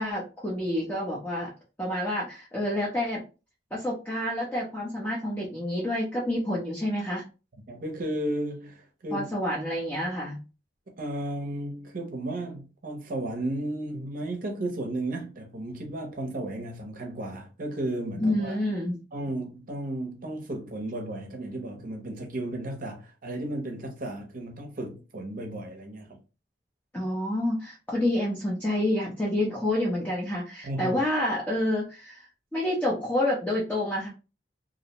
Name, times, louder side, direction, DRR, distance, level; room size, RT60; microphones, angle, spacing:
voice 1, 0.0-1.5 1.8-3.2 3.7-7.2 9.1-10.4 18.2-18.9 26.9-34.1, left 1 dB, 10° left, 0.6 m, -28 dB
voice 2, 7.7-9.3 10.9-18.6 19.1-26.2 30.6-31.0, right 1 dB, 50° right, 0.6 m, -34 dB
2.5 x 2.0 x 2.8 m
head